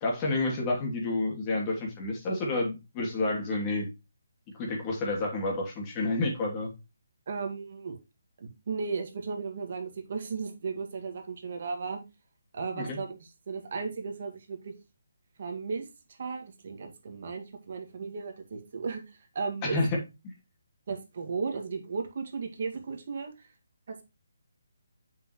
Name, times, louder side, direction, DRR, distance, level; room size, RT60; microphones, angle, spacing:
voice 1, 0.0-3.9 4.5-6.7 12.8-13.0 19.6-19.9 20.2-20.3, left 2 dB, 25° left, -1 dB, 2.8 m, -29 dB
voice 2, 7.3-8.0 8.4-12.0 12.5-13.2 13.5-14.7 15.4-19.8 20.9-23.5 23.9-24.0, right 4 dB, 50° right, 4 dB, 2.0 m, -35 dB
7.4 x 6.1 x 3.1 m, 0.26 s
hypercardioid pair, 155°, 0 cm